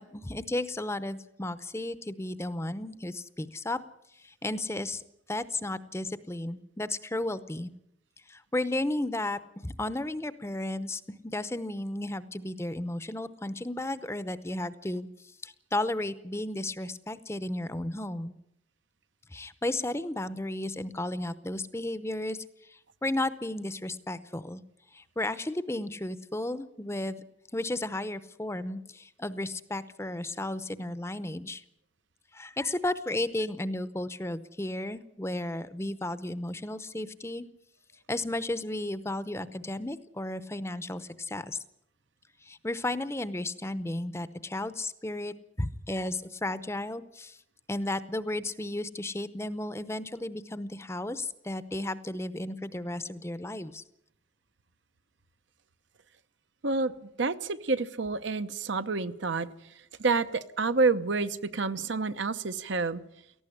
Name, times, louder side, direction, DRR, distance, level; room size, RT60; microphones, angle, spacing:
voice 1, 0.0-3.8 4.2-5.0 5.3-7.7 8.3-15.1 15.4-18.3 19.3-24.6 24.9-27.2 27.5-31.6 32.3-37.4 38.1-41.6 42.4-47.4 47.7-53.8, left 1 dB, 15° left, 14 dB, 0.7 m, -34 dB
voice 2, 56.6-59.5 60.0-63.0, right 3 dB, 70° right, 11 dB, 0.9 m, -28 dB
18.5 x 14.5 x 9.9 m, 0.80 s
head